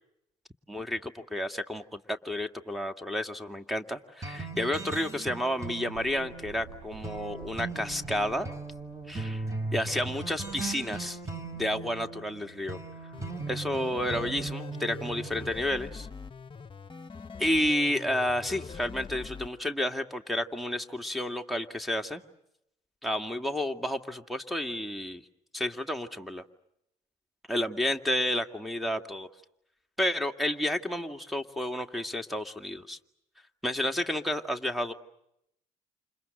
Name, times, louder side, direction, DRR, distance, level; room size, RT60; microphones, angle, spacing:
voice 1, 0.7-8.5 9.1-9.4 9.7-11.2 11.5-12.8 13.5-16.1 17.4-22.2 23.0-25.2 25.5-26.4 27.5-29.3 30.0-33.0 33.6-34.9, left 1 dB, ahead, 6 dB, 2.3 m, -31 dB
sound 1, 4.2-15.5, right 3 dB, 15° right, 4.9 m, -38 dB
sound 2, 5.9-11.5, right 6 dB, 80° right, 6.0 m, -52 dB
sound 3, 13.1-19.5, left 5 dB, 30° left, 1.3 m, -43 dB
29.0 x 28.5 x 6.6 m, 0.80 s
hypercardioid pair, 60°, 18 cm